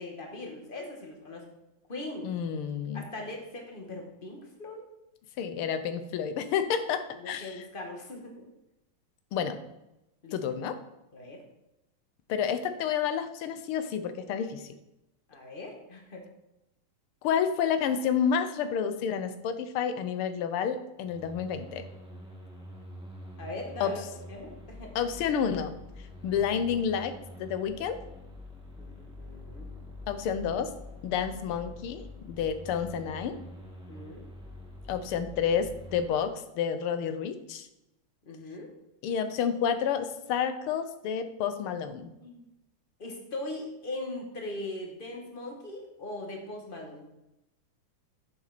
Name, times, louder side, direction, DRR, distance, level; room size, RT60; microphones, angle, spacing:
voice 1, 0.0-1.5 1.9-2.3 2.9-4.9 7.1-8.5 10.2-10.3 11.1-11.4 15.3-16.3 23.4-24.0 24.3-24.9 28.8-29.6 33.9-34.2 38.2-38.7 42.2-42.5 43.0-47.1, left 2 dB, 25° left, 1 dB, 1.6 m, -40 dB
voice 2, 2.2-3.1 5.4-7.6 9.3-9.6 10.3-10.8 12.3-14.7 17.2-21.9 23.8-23.9 24.9-25.7 26.2-28.0 30.1-30.7 31.0-33.4 34.9-37.7 39.0-42.1, left 7 dB, 85° left, 9 dB, 1.7 m, -30 dB
sound 1, 21.0-36.1, left 1 dB, 5° right, 1.5 m, -46 dB
9.1 x 7.3 x 4.1 m, 0.91 s
omnidirectional pair, 2.3 m